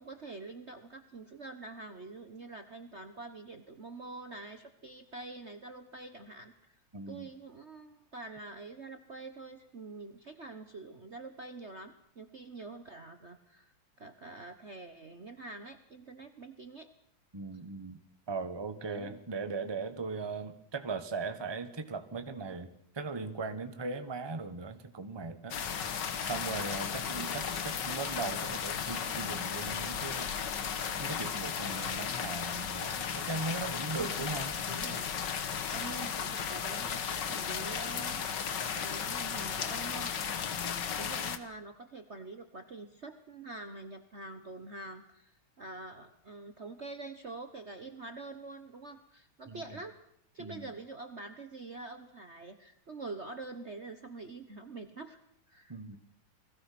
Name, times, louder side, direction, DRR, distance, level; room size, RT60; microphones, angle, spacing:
voice 1, 0.0-6.7 7.1-13.7 14.0-16.9 18.8-19.2 27.0-27.8 34.0-34.4 34.7-35.1 35.7-38.2 38.7-40.1 41.0-50.0 50.3-55.2 55.5-56.0, right 3 dB, 35° right, 8 dB, 1.3 m, -46 dB
voice 2, 6.9-7.3 17.3-18.0 18.3-22.7 22.9-25.7 26.2-30.3 31.0-34.6 40.9-41.1 49.5-49.6 50.4-50.7 55.7-56.0, right 4 dB, 15° right, 10 dB, 1.2 m, -38 dB
sound 1, 25.5-41.4, left 7 dB, 55° left, 1.9 m, -35 dB
30.0 x 20.5 x 6.0 m, 0.69 s
omnidirectional pair, 2.4 m